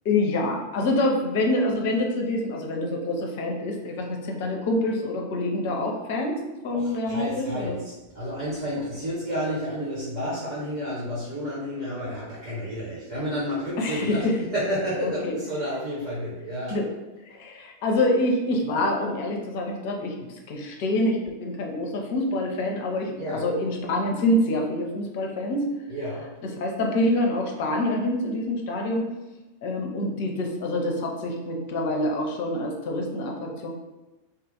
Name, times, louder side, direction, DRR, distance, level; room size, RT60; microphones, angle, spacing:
voice 1, 0.0-7.7 13.8-14.3 15.2-15.3 16.7-16.9 17.3-20.2 20.5-25.7 26.4-29.0 29.6-33.7, left 1 dB, 50° left, 1 dB, 0.6 m, -26 dB
voice 2, 6.7-16.8 17.3-17.4 23.2-23.5 25.9-26.3, equal, 35° right, -9 dB, 1.2 m, -31 dB
2.7 x 2.4 x 3.8 m, 1.1 s
figure-of-eight pair, 90°, 0 cm